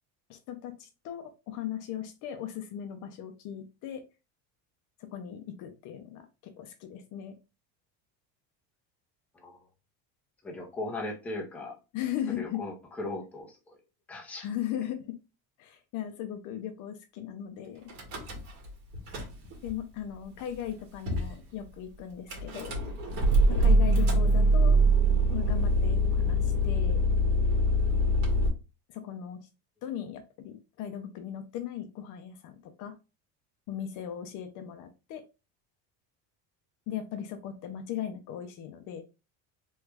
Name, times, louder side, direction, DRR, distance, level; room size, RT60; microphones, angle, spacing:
voice 1, 0.3-4.0 5.1-7.4 11.9-12.6 14.4-15.2 15.6-17.9 19.6-22.8 23.5-24.8 25.2-27.0 28.9-29.5 29.8-32.9 33.7-35.2 36.9-39.0, left 10 dB, 50° left, 7 dB, 0.5 m, -38 dB
voice 2, 10.4-11.8 12.4-13.8 14.1-14.5, left 2 dB, 5° left, -1 dB, 0.6 m, -38 dB
Car / Engine starting / Idling, 17.9-18.7 18.9-19.7 20.4-20.5 20.6-20.7 21.1-21.3 22.3-28.5, right 1 dB, 85° right, 1.5 m, -24 dB
3.1 x 2.3 x 3.3 m, 0.29 s
cardioid pair, 155°, 40 cm